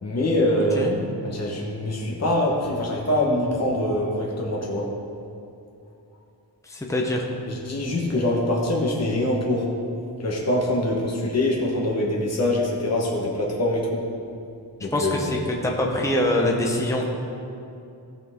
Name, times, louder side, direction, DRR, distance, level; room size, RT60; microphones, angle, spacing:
voice 1, 0.0-1.1 1.3-4.9 7.5-9.7 10.2-14.0 14.8-15.2, left 1 dB, 35° left, -3 dB, 1.3 m, -24 dB
voice 2, 6.6-7.2 14.9-17.0, left 1 dB, 5° left, -1 dB, 0.8 m, -24 dB
15.5 x 6.0 x 3.6 m, 2.7 s
wide cardioid pair, 170°, 42 cm